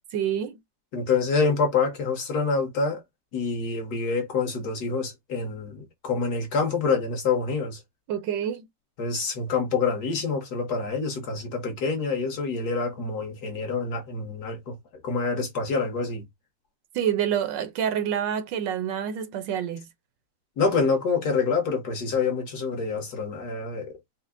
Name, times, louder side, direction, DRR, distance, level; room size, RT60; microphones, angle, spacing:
voice 1, 0.1-0.6 8.1-8.7 16.9-19.9, right 9 dB, 75° right, 1.3 m, -27 dB
voice 2, 0.9-3.0 3.3-7.8 9.0-14.8 15.0-16.2 20.6-24.0, left 4 dB, 60° left, 1.5 m, -26 dB
4.3 x 2.1 x 3.6 m
omnidirectional pair, 2.1 m